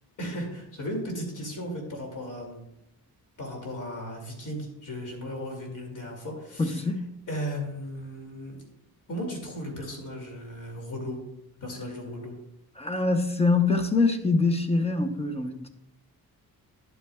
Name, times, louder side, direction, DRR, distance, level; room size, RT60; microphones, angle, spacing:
voice 1, 0.2-2.6 3.4-6.8 7.3-8.6 9.1-11.2 11.6-12.3, equal, 55° left, 2.5 m, -36 dB
voice 2, 6.6-7.1 12.8-15.7, left 3 dB, 15° left, 0.7 m, -24 dB
11.0 x 8.4 x 2.3 m
wide cardioid pair, 140°, 37 cm